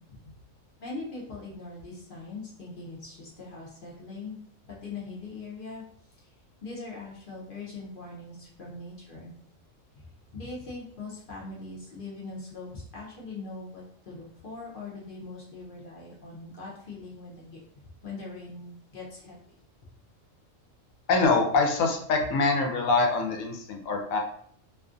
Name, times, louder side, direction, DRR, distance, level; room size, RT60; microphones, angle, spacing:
voice 1, 0.8-4.4 4.6-5.8 6.6-9.3 9.9-10.1 10.3-17.6 18.0-19.4, left 3 dB, 55° left, -4 dB, 0.6 m, -41 dB
voice 2, 21.1-24.2, left 3 dB, 80° left, 2 dB, 1.0 m, -24 dB
2.5 x 2.5 x 2.4 m, 0.63 s
omnidirectional pair, 1.4 m